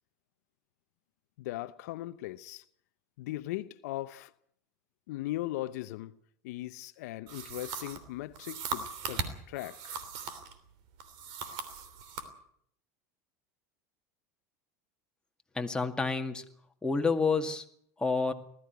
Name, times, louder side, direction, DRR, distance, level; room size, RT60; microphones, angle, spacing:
voice 1, 1.4-2.6 3.2-4.3 5.1-6.2 6.4-10.0, left 16 dB, 75° left, 0.7 m, -38 dB
sound 1, 7.3-10.6 11.0-12.3, right 6 dB, 65° right, 3.1 m, -39 dB
voice 2, 15.5-16.4 16.8-17.6 18.0-18.3, left 4 dB, 10° left, 2.1 m, -29 dB
19.5 x 14.0 x 9.4 m
hypercardioid pair, 100°, 9 cm